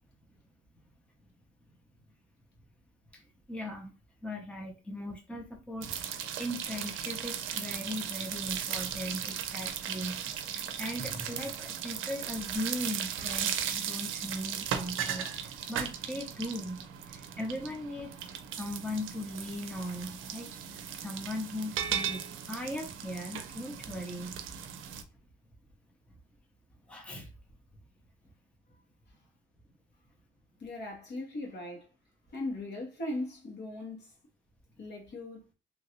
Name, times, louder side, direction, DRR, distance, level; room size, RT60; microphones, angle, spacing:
voice 1, 3.5-3.9 4.2-6.0 6.4-10.2 10.5-18.1 18.6-24.4 26.9-27.3, left 1 dB, 5° left, 0.7 m, -39 dB
sound 1, 5.8-25.0, right 9 dB, 80° right, 0.5 m, -37 dB
voice 2, 30.6-31.9 32.3-34.1 34.8-35.4, left 2 dB, 60° left, 1.5 m, -38 dB
2.9 x 2.5 x 2.9 m
cardioid pair, 90°, 20 cm